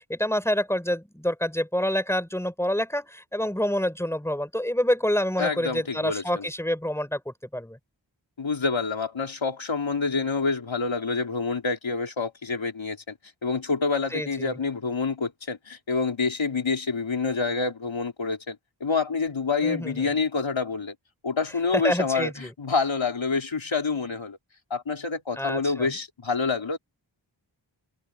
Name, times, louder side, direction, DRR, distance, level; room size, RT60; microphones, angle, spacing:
voice 1, 0.0-7.8 14.1-14.6 19.6-20.1 21.7-22.5 25.4-25.9, equal, 5° left, 4.1 m, -27 dB
voice 2, 5.4-6.5 8.4-13.1 13.4-20.9 21.2-24.4 24.7-26.8, left 4 dB, 85° left, 3.2 m, -27 dB
wide cardioid pair, 55°, 45 cm